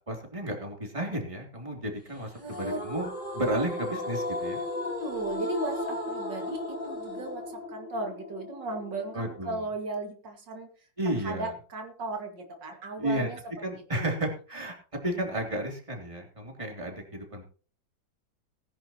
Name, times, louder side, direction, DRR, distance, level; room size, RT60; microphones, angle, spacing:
voice 1, 0.1-3.1 3.3-4.6 9.1-9.6 11.0-11.5 13.0-13.3 13.6-14.7 15.0-17.4, right 1 dB, 15° right, 1 dB, 3.2 m, -32 dB
voice 2, 2.4-2.8 4.8-10.7 11.0-13.4 13.9-14.3, right 2 dB, 80° right, 3 dB, 2.8 m, -36 dB
sound 1, 2.5-9.5, left 1 dB, 25° left, 4.8 m, -35 dB
19.0 x 10.5 x 3.0 m, 0.38 s
omnidirectional pair, 1.9 m